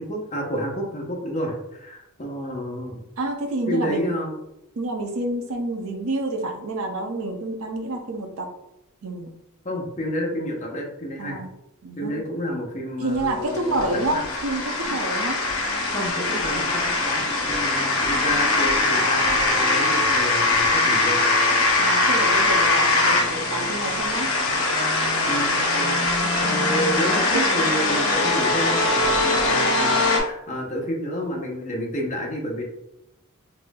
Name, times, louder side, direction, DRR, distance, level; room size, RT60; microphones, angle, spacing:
voice 1, 0.0-3.0 3.7-4.3 9.6-11.4 12.0-14.2 15.9-21.2 25.2-26.0 26.4-32.6, equal, 30° left, 0 dB, 0.7 m, -30 dB
voice 2, 3.2-4.1 4.8-8.5 9.0-9.3 11.2-11.5 11.8-12.2 13.0-15.4 21.8-24.3 26.2-26.9 27.3-27.4, right 2 dB, 70° right, 3 dB, 0.6 m, -28 dB
sound 1, 13.2-30.2, left 2 dB, 70° left, 0.8 m, -21 dB
4.1 x 2.6 x 2.3 m, 0.88 s
head